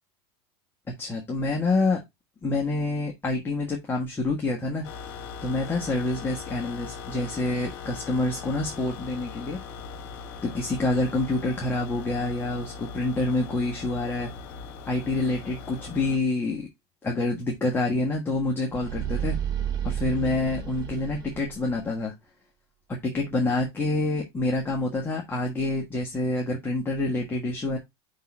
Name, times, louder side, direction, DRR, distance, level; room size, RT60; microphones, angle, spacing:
voice 1, 1.0-2.0 2.4-4.9 5.4-9.6 10.4-14.3 14.9-16.7 17.0-19.4 19.8-22.1 22.9-27.8, left 2 dB, 15° left, -1 dB, 1.4 m, -27 dB
sound 1, 4.8-16.2, left 5 dB, 65° left, 1.7 m, -40 dB
sound 2, 18.7-22.0, right 9 dB, 30° right, 2.1 m, -31 dB
5.5 x 3.9 x 4.9 m, 0.19 s
supercardioid pair, 130°, 14 cm